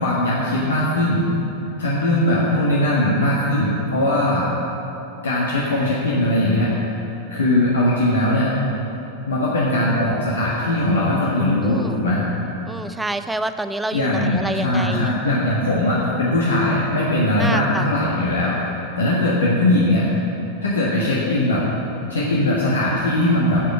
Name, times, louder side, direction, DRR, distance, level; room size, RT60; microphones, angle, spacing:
voice 1, 0.0-1.3 1.8-4.5 5.2-6.7 7.3-8.5 9.3-12.2 13.9-18.7 19.0-20.1 20.6-21.6 22.1-23.6, left 1 dB, 70° left, -5 dB, 1.7 m, -20 dB
voice 2, 11.6-12.0 12.6-15.1 17.4-17.9, right 2 dB, 5° right, 10 dB, 0.5 m, -28 dB
9.0 x 7.7 x 9.2 m, 3.0 s
figure-of-eight pair, 90°, 0 cm